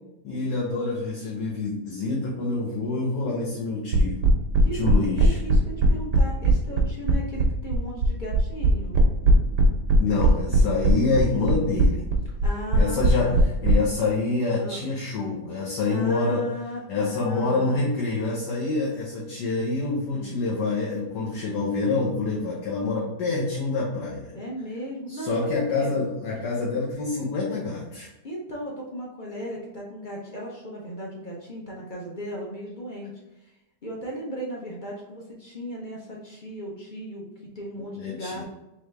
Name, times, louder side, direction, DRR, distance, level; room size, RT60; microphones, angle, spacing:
voice 1, 0.2-4.2 4.7-5.4 10.0-12.1 12.7-16.4 16.9-24.3 25.1-28.1 37.9-38.4, left 3 dB, 85° left, -5 dB, 1.4 m, -26 dB
sound 1, 3.9-13.7, right 3 dB, 90° right, 1.3 m, -19 dB
voice 2, 4.6-9.0 11.3-11.6 12.4-13.4 14.6-14.8 15.6-17.9 20.1-20.3 24.3-25.3 25.7-25.9 28.2-33.1 33.4-33.5 33.8-37.2 37.5-38.4, equal, 40° left, -3 dB, 0.7 m, -36 dB
3.8 x 3.3 x 3.3 m, 0.94 s
omnidirectional pair, 1.7 m